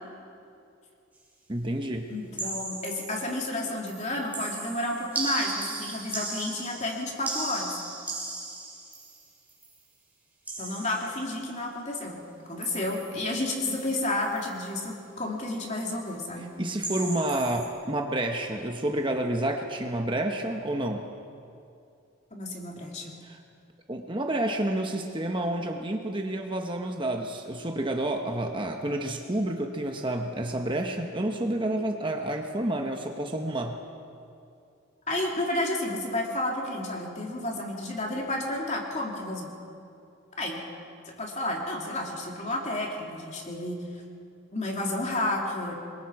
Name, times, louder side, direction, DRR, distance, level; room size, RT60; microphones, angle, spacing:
voice 1, 1.5-2.1 16.6-21.1 23.2-23.4 23.9-33.8, right 1 dB, 25° right, 3 dB, 1.1 m, -29 dB
voice 2, 2.1-7.8 10.6-12.2 12.5-16.5 22.3-23.1 35.1-39.5 40.4-40.6 41.0-44.0 44.5-45.7, left 1 dB, 35° left, -1 dB, 3.0 m, -31 dB
sound 1, 2.4-3.5 3.9-9.8 10.5-11.4 12.6-13.3 13.7-14.0 14.2-14.5 16.8-17.7, right 2 dB, 10° right, 4.3 m, -36 dB
26.5 x 22.0 x 4.8 m, 2.5 s
head